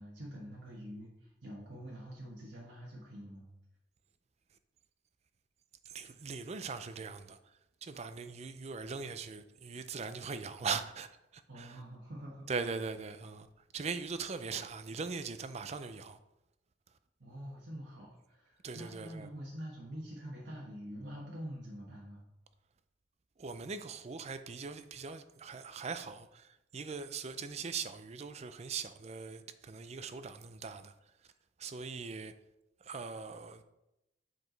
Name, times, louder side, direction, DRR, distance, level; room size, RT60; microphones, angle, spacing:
voice 1, 0.0-3.5 11.5-12.5 17.2-22.2, equal, 90° right, 1.4 m, -46 dB
voice 2, 5.8-11.8 12.5-13.5 13.7-16.2 18.6-19.3 23.4-30.9 31.6-32.3 32.8-33.6, right 5 dB, 35° right, 0.4 m, -41 dB
7.6 x 4.8 x 3.9 m
head